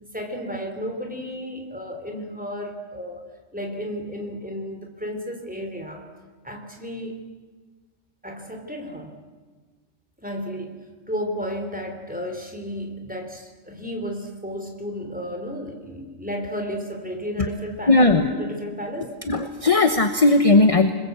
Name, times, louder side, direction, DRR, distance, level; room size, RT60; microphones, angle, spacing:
voice 1, 0.0-3.2 3.5-6.0 6.4-7.2 8.2-9.2 10.2-19.2, equal, 5° right, 3 dB, 3.4 m, -33 dB
voice 2, 17.9-18.3 19.3-20.9, left 2 dB, 30° left, 8 dB, 1.1 m, -17 dB
25.5 x 21.5 x 8.1 m, 1.4 s
omnidirectional pair, 1.4 m